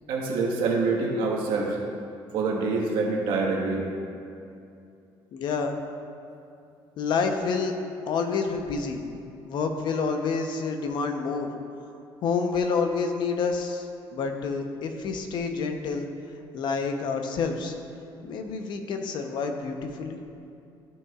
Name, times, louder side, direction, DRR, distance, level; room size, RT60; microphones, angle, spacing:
voice 1, 0.1-1.8 2.3-3.9, right 3 dB, 80° right, -2 dB, 1.5 m, -26 dB
voice 2, 5.3-5.7 7.0-7.7 8.1-9.0 9.4-11.5 12.2-16.1 16.5-17.7 18.2-20.2, left 5 dB, 60° left, 5 dB, 0.8 m, -28 dB
13.5 x 6.1 x 2.4 m, 2.6 s
cardioid pair, 130°, 9 cm